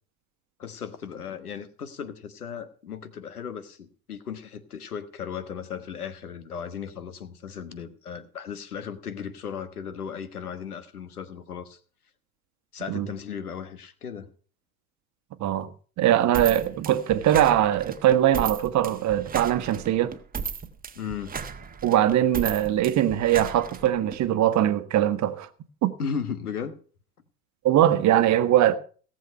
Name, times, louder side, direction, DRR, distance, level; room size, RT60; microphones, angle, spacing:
voice 1, 0.6-11.8 12.7-14.3 20.9-21.3 26.0-26.8, left 7 dB, 90° left, 1.4 m, -36 dB
voice 2, 16.0-20.1 21.8-25.5 25.8-25.9 27.6-28.8, right 12 dB, 40° right, 1.3 m, -21 dB
sound 1, 16.3-24.2, right 6 dB, 20° right, 1.3 m, -35 dB
17.5 x 7.7 x 5.5 m
hypercardioid pair, 85°, 44 cm